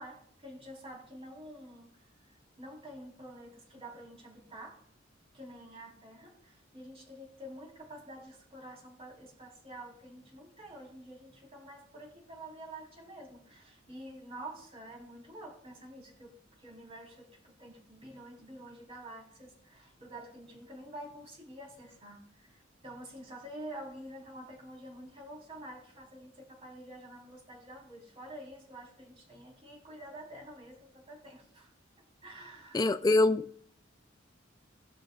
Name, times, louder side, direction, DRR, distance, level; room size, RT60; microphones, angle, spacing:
voice 1, 0.0-1.9 2.6-4.8 5.3-31.7 32.0-32.9, right 1 dB, 30° right, 3.5 m, -48 dB
voice 2, 32.7-33.7, left 2 dB, 20° left, 0.4 m, -25 dB
17.0 x 11.5 x 2.3 m
head